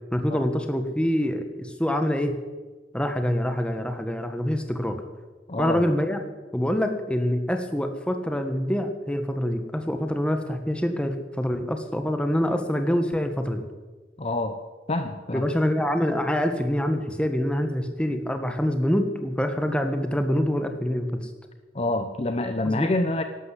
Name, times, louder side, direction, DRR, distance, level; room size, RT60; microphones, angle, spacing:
voice 1, 0.1-2.3 2.9-5.0 5.6-6.2 6.5-13.6 15.3-21.2 22.6-22.9, equal, 5° left, 6 dB, 1.4 m, -25 dB
voice 2, 5.5-5.9 14.2-14.6 14.9-15.5 21.7-23.2, left 2 dB, 35° left, 8 dB, 0.8 m, -27 dB
12.0 x 12.0 x 8.2 m, 1.3 s
head